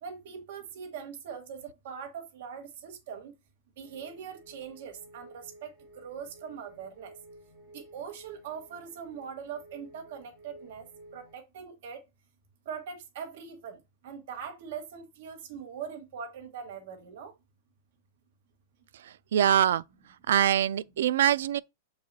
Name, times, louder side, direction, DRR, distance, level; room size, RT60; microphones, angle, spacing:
voice 1, 0.0-3.3 3.8-7.1 7.7-12.0 12.6-17.3, right 7 dB, 55° right, 1.6 m, -42 dB
sound 1, 3.8-11.3, right 1 dB, ahead, 3.0 m, -53 dB
voice 2, 19.3-19.8 20.3-21.6, right 10 dB, 75° right, 0.3 m, -23 dB
7.4 x 4.7 x 2.8 m
supercardioid pair, 170°, 0 cm